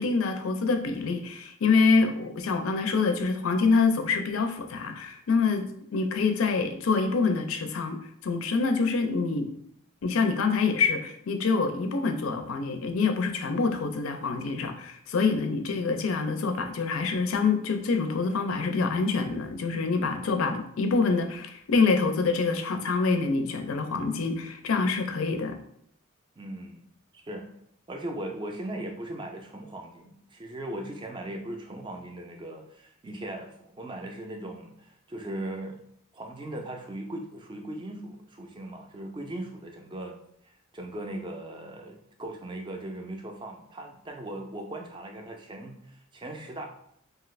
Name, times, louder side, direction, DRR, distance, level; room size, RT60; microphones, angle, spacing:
voice 1, 0.0-9.5 10.0-25.6, left 4 dB, 80° left, 6 dB, 0.4 m, -26 dB
voice 2, 26.4-26.8 27.1-27.5 27.9-35.8 36.1-40.2 40.4-46.7, right 1 dB, 20° right, 3 dB, 0.3 m, -38 dB
2.7 x 2.4 x 3.1 m, 0.70 s
head